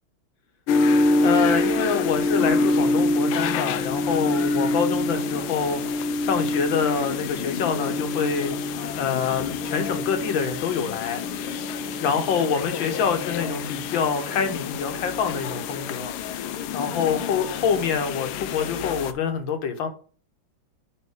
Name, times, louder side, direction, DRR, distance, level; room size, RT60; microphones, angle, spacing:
sound 1, 0.7-19.1, left 3 dB, 90° left, 1.5 m, -26 dB
voice 1, 1.2-8.5 9.0-11.2 12.0-16.1 16.7-19.9, left 6 dB, 70° left, 1.7 m, -26 dB
10.0 x 3.7 x 3.5 m
omnidirectional pair, 2.3 m